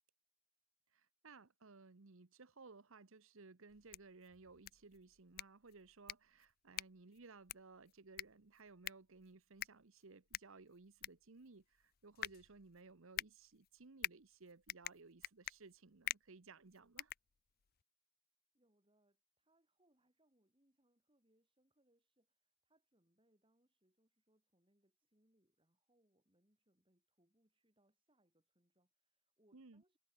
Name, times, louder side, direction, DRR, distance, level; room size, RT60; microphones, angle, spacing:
voice 1, 0.9-17.1 29.5-29.8, right 3 dB, 65° right, 1.0 m, -60 dB
sound 1, 3.7-17.8, left 12 dB, 40° left, 0.5 m, -49 dB
voice 2, 18.5-30.0, right 1 dB, 25° right, 4.3 m, -79 dB
head